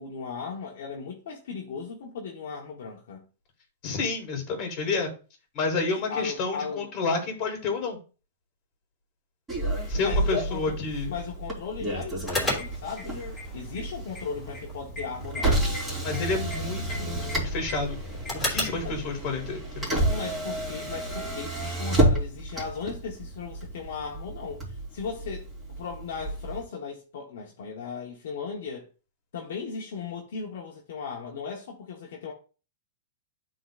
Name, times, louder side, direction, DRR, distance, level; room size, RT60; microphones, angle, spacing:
voice 1, 0.0-3.3 5.9-6.9 10.0-10.8 11.1-13.3 13.5-15.6 18.8-19.3 20.1-25.5 25.8-28.9 29.3-32.3, left 5 dB, 70° left, 1.2 m, -37 dB
voice 2, 3.8-5.1 5.5-8.0 9.9-11.2 16.0-18.0 18.5-19.9, left 4 dB, 35° left, 3.0 m, -30 dB
Motor vehicle (road), 9.5-26.6, right 1 dB, 10° right, 3.2 m, -30 dB
sound 1, 12.2-18.9, left 2 dB, 10° left, 3.2 m, -35 dB
11.5 x 3.9 x 2.5 m
hypercardioid pair, 140°, 0 cm